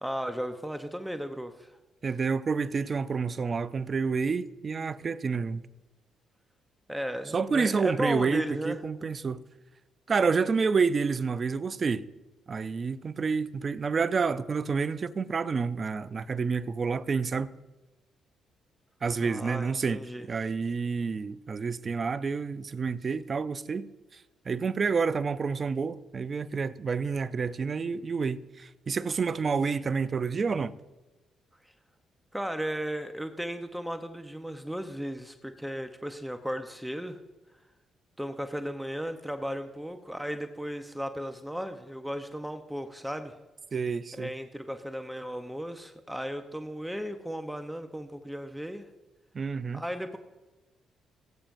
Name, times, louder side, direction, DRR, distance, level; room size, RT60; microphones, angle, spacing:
voice 1, 0.0-1.7 6.9-8.8 19.2-20.3 32.3-37.2 38.2-43.3 44.1-48.9 49.7-50.2, equal, 5° right, 0.8 m, -35 dB
voice 2, 2.0-5.6 7.3-9.4 10.1-12.0 12.5-17.5 19.0-20.0 20.3-23.9 24.5-30.7 43.7-44.3 49.3-49.8, right 5 dB, 45° right, 0.5 m, -29 dB
18.5 x 8.8 x 2.6 m
supercardioid pair, 60°, 0 cm